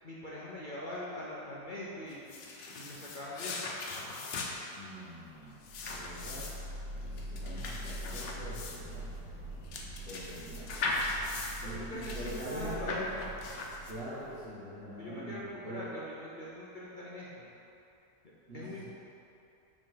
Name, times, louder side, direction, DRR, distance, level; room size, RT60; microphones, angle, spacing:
voice 1, 0.0-2.2 2.8-3.7 11.6-12.9 15.0-17.4 18.5-18.8, left 1 dB, 45° left, -7 dB, 0.6 m, -42 dB
sound 1, 2.1-14.2, left 3 dB, 75° left, 1.4 m, -39 dB
voice 2, 4.7-6.5 7.0-9.1 10.0-10.7 11.6-13.2 13.9-15.9 18.5-18.8, equal, 35° right, -12 dB, 1.3 m, -43 dB
sound 2, 5.4-14.7, right 1 dB, 85° right, 1.6 m, -44 dB
5.4 x 4.7 x 5.7 m, 2.8 s
omnidirectional pair, 1.9 m